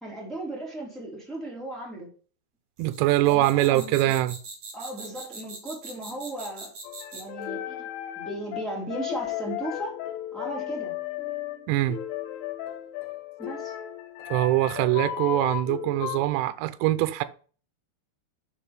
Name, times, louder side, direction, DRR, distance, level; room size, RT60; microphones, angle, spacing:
voice 1, 0.0-2.1 3.3-4.1 4.7-6.7 7.1-7.9 8.2-9.9 10.3-10.9 13.4-13.7, right 1 dB, ahead, 1.7 m, -36 dB
sound 1, 2.8-7.4, right 3 dB, 40° right, 3.7 m, -42 dB
voice 2, 2.8-4.4 11.7-12.0 14.3-17.2, right 16 dB, 80° right, 2.7 m, -23 dB
sound 2, 6.8-16.3, left 12 dB, 90° left, 3.4 m, -35 dB
6.7 x 4.8 x 5.0 m
omnidirectional pair, 5.3 m